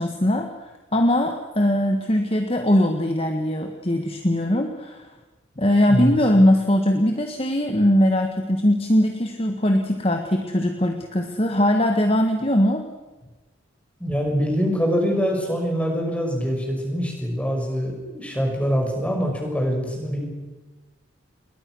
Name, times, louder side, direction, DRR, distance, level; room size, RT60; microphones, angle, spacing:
voice 1, 0.0-5.1 5.6-12.8, left 1 dB, 25° left, 4 dB, 1.6 m, -21 dB
voice 2, 14.0-20.3, equal, 5° left, 1 dB, 6.0 m, -24 dB
28.5 x 22.0 x 6.3 m, 1.2 s
head